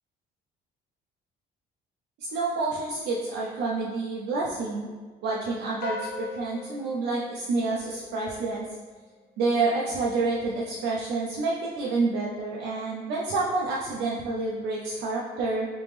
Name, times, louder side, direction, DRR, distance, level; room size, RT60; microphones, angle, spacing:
voice 1, 2.2-4.9 5.2-8.6 9.4-15.7, right 3 dB, 80° right, -5 dB, 0.6 m, -28 dB
sound 1, 5.8-8.3, left 3 dB, 75° left, 0.7 m, -39 dB
3.3 x 3.0 x 3.3 m, 1.5 s
cardioid pair, 110°, 17 cm